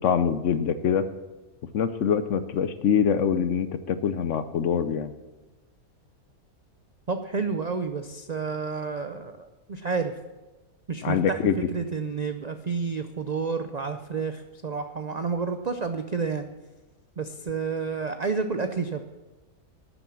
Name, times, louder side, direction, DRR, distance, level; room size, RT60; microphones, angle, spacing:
voice 1, 0.0-1.1 1.7-5.1 11.0-11.5, left 7 dB, 65° left, 12 dB, 0.9 m, -24 dB
voice 2, 7.1-10.1 10.9-16.5 17.2-19.0, right 5 dB, 55° right, 7 dB, 0.4 m, -30 dB
12.0 x 8.1 x 7.2 m, 1.1 s
omnidirectional pair, 1.5 m